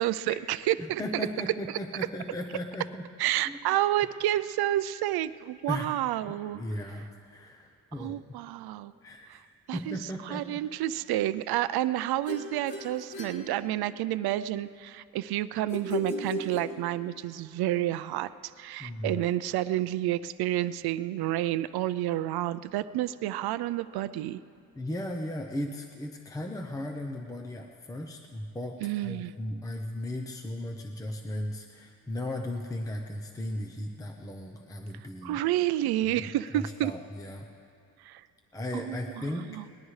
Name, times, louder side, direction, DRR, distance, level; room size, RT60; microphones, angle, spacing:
voice 1, 0.0-1.0 3.2-6.6 8.0-8.9 9.3-9.4 9.7-10.0 10.3-24.4 28.8-29.3 35.2-36.9 38.0-38.2 38.7-39.6, right 14 dB, 80° right, 14 dB, 0.5 m, -30 dB
voice 2, 0.8-3.1 3.5-3.6 5.7-6.0 6.5-8.2 9.0-9.4 9.7-10.6 18.8-19.2 24.7-35.4 36.0-37.5 38.5-39.5, left 1 dB, 10° left, 3 dB, 0.6 m, -36 dB
sound 1, 12.3-14.2 15.7-17.2, equal, 65° left, 2.2 m, -36 dB
21.0 x 19.5 x 3.2 m, 2.4 s
cardioid pair, 150°, 38 cm